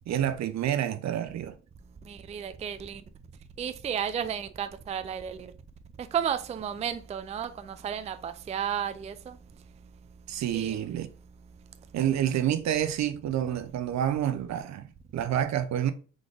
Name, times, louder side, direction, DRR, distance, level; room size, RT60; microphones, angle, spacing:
voice 1, 0.1-1.5 10.3-11.1 11.9-15.9, right 10 dB, 65° right, 0.6 m, -28 dB
voice 2, 2.1-3.0 3.6-5.5 6.0-9.4 10.5-10.8, right 8 dB, 25° right, 0.3 m, -33 dB
3.8 x 3.8 x 3.3 m
cardioid pair, 90°, 30 cm